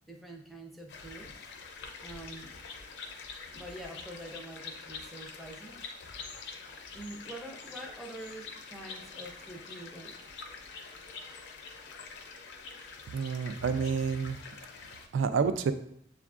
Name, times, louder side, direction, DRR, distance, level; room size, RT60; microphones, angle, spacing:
voice 1, 0.1-1.3 2.0-2.5 3.5-5.7 6.9-10.1, right 1 dB, ahead, 0 dB, 0.4 m, -45 dB
sound 1, 0.9-15.1, left 4 dB, 65° left, 0.4 m, -46 dB
voice 2, 13.1-14.4 15.1-15.7, right 5 dB, 85° right, 10 dB, 0.3 m, -29 dB
6.8 x 2.4 x 2.4 m, 0.71 s
head